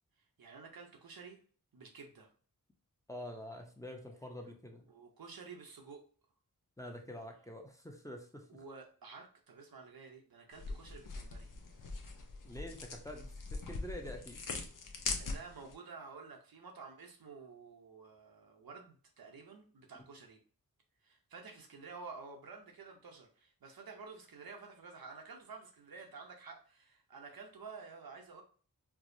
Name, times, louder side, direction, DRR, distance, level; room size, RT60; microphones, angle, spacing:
voice 1, 0.4-1.4 1.7-2.3 4.9-6.0 8.5-11.5 15.2-20.4 21.0-28.4, right 4 dB, 90° right, 2 dB, 0.8 m, -51 dB
voice 2, 3.1-4.9 6.8-8.6 12.4-14.4, left 1 dB, 10° left, 2 dB, 0.6 m, -47 dB
sound 1, 10.5-15.7, left 3 dB, 65° left, 0.6 m, -42 dB
4.6 x 2.0 x 2.6 m, 0.41 s
wide cardioid pair, 70°, 35 cm